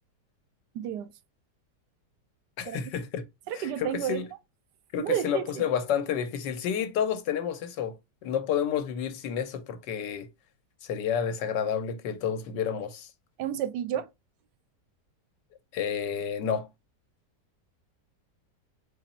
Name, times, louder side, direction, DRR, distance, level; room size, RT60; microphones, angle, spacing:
voice 1, 0.7-1.1 2.7-2.8 3.5-4.2 5.0-5.6 13.4-14.1, right 10 dB, 75° right, 1.1 m, -31 dB
voice 2, 2.6-3.2 3.5-4.3 4.9-8.0 8.2-10.3 10.8-13.1 15.7-16.7, left 8 dB, 80° left, 1.4 m, -30 dB
4.2 x 3.0 x 4.1 m
omnidirectional pair, 1.9 m